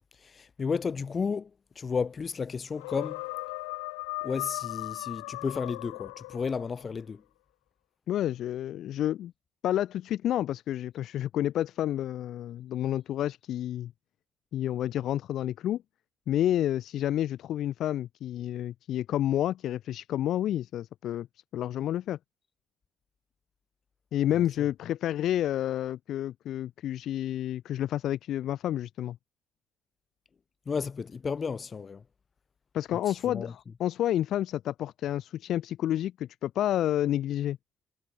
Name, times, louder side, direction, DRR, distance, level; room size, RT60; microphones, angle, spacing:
voice 1, 0.3-1.5 1.8-3.2 4.2-7.2 30.7-32.0 33.3-33.5, left 5 dB, 40° left, 3.7 m, -32 dB
sound 1, 2.7-6.8, left 37 dB, 80° left, 2.9 m, -37 dB
voice 2, 8.1-9.3 9.6-13.9 14.5-15.8 16.3-21.3 21.5-22.2 24.1-29.2 32.7-37.6, left 12 dB, 65° left, 2.0 m, -29 dB
hypercardioid pair, 50°, 0 cm